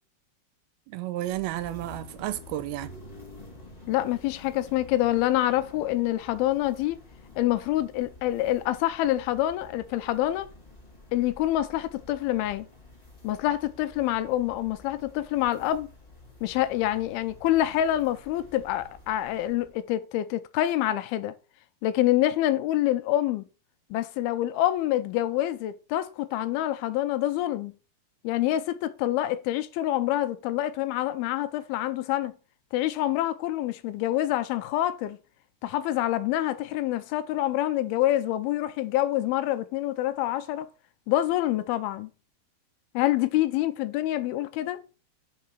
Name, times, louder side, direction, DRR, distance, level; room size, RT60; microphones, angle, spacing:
voice 1, 0.9-3.0, right 15 dB, 85° right, 2.4 m, -32 dB
sound 1, 1.2-19.8, left 2 dB, 25° left, 0.8 m, -50 dB
voice 2, 3.9-7.0 7.4-10.5 11.1-12.7 13.2-15.9 16.4-21.3 21.8-23.4 23.9-27.7 28.2-32.3 32.7-35.2 35.6-40.7 41.1-42.1 42.9-44.8, left 14 dB, 80° left, 2.4 m, -26 dB
5.6 x 4.9 x 5.9 m
omnidirectional pair, 4.5 m